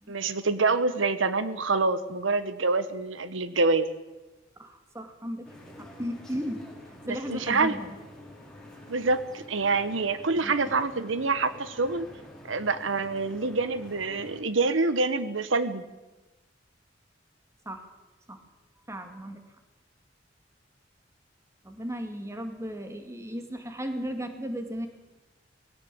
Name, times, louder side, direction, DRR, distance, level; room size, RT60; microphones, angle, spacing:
voice 1, 0.1-3.9 7.0-7.8 8.9-12.1 12.4-15.8, right 3 dB, 90° right, 13 dB, 1.1 m, -26 dB
voice 2, 4.6-6.7 7.1-8.0 10.3-10.5 17.7-17.9 18.3-18.4 18.9-19.4 21.6-24.9, equal, 15° right, 6 dB, 2.2 m, -35 dB
sound 1, 5.4-14.4, left 1 dB, 5° left, 4.7 m, -48 dB
19.5 x 17.0 x 8.5 m, 1.1 s
head